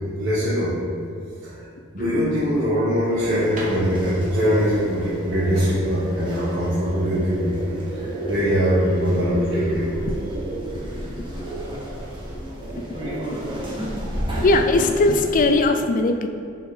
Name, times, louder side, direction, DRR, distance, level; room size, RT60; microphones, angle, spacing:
voice 1, 0.2-0.8 1.4-1.7 1.9-9.9, equal, 65° right, -10 dB, 1.2 m, -22 dB
sound 1, 1.8-7.3, right 1 dB, 40° right, 1.0 m, -42 dB
sound 2, 3.1-15.5, right 1 dB, 25° right, 1.3 m, -31 dB
voice 2, 14.3-16.3, left 2 dB, 40° left, 7 dB, 0.4 m, -19 dB
5.6 x 4.5 x 4.0 m, 2.4 s
head